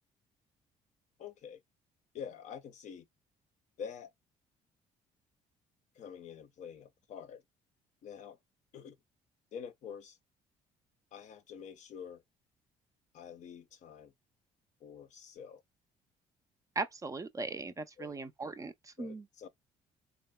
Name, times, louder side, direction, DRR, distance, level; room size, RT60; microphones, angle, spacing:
voice 1, 1.2-1.6 2.1-3.0 3.8-4.1 6.0-7.4 8.0-8.4 8.7-9.0 9.5-10.2 11.1-12.2 13.1-14.1 14.8-15.6 18.0-18.2 19.0-19.5, left 7 dB, 60° left, 0.6 m, -46 dB
voice 2, 16.8-19.3, right 3 dB, 25° right, 0.4 m, -39 dB
3.6 x 2.0 x 2.2 m
cardioid pair, 85°, 14 cm